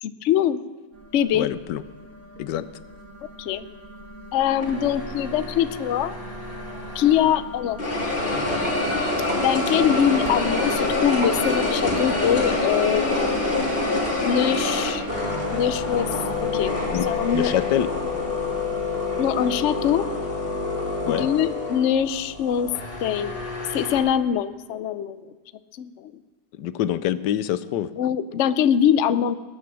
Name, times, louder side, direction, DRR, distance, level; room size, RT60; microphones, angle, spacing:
voice 1, 0.0-0.6 1.1-1.5 3.4-3.6 4.3-6.1 6.9-7.8 9.4-13.3 14.2-15.1 15.5-16.1 16.4-16.7 17.0-17.5 19.2-20.1 21.1-22.7 23.0-25.3 25.7-26.1 28.0-29.3, left 9 dB, 65° left, 13 dB, 0.7 m, -23 dB
sound 1, 0.9-20.1, equal, 60° right, 2.0 m, -39 dB
voice 2, 1.3-1.8 2.4-2.7 16.9-17.1 17.3-17.9 21.0-21.3 26.6-27.9, left 11 dB, 85° left, 15 dB, 1.3 m, -25 dB
sound 2, 4.6-7.4 7.8-24.0, left 2 dB, 35° left, 2.7 m, -27 dB
sound 3, 8.0-14.8, right 2 dB, 25° right, 0.7 m, -40 dB
19.5 x 9.3 x 6.2 m, 1.4 s
omnidirectional pair, 1.8 m